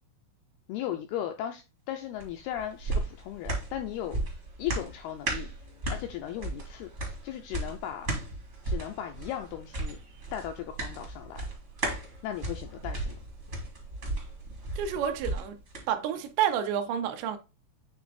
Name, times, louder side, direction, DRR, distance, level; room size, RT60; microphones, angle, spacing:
voice 1, 0.7-4.2 4.6-5.5 5.9-8.1 8.7-10.0 10.3-11.5 12.2-13.1, left 11 dB, 90° left, 2.2 m, -36 dB
sound 1, 2.2-15.8 16.2-16.3, right 2 dB, 50° right, 0.8 m, -35 dB
voice 2, 14.8-15.6 15.9-17.4, right 9 dB, 85° right, 2.9 m, -29 dB
8.8 x 3.3 x 3.7 m
omnidirectional pair, 5.0 m